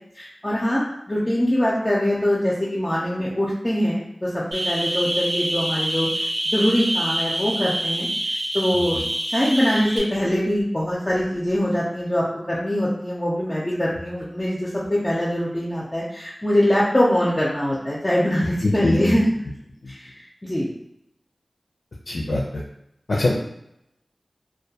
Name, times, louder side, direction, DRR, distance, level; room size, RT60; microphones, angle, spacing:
voice 1, 0.1-6.1 6.5-8.1 8.5-9.0 9.3-19.3 19.9-20.7, equal, 30° left, -6 dB, 0.5 m, -23 dB
sound 1, 4.5-10.0, right 1 dB, 85° right, 0.6 m, -26 dB
voice 2, 18.6-19.2 19.8-19.9 22.1-22.6 23.1-23.4, left 2 dB, 85° left, -4 dB, 0.4 m, -23 dB
2.2 x 2.2 x 2.7 m, 0.78 s
wide cardioid pair, 45°, 0 cm